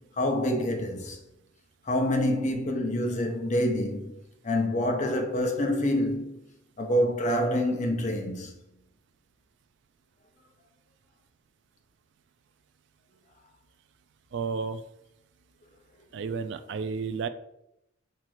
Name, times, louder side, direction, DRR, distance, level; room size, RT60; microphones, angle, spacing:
voice 1, 0.2-1.2 1.9-4.2 4.4-6.3 6.8-8.5, left 1 dB, 35° left, 0.6 m, -26 dB
voice 2, 14.3-14.8 16.1-17.3, right 5 dB, 60° right, 0.3 m, -32 dB
4.4 x 2.5 x 4.5 m
head